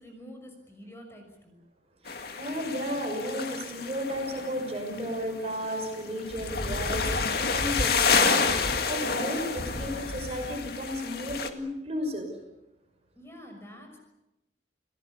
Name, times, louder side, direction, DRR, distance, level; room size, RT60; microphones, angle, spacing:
voice 1, 0.0-1.6 13.2-14.0, equal, 15° left, 3 dB, 6.0 m, -47 dB
voice 2, 2.0-12.4, equal, 35° right, 3 dB, 5.9 m, -33 dB
sound 1, 2.1-11.5, left 4 dB, 60° left, 2.1 m, -29 dB
29.0 x 18.0 x 8.5 m, 0.94 s
head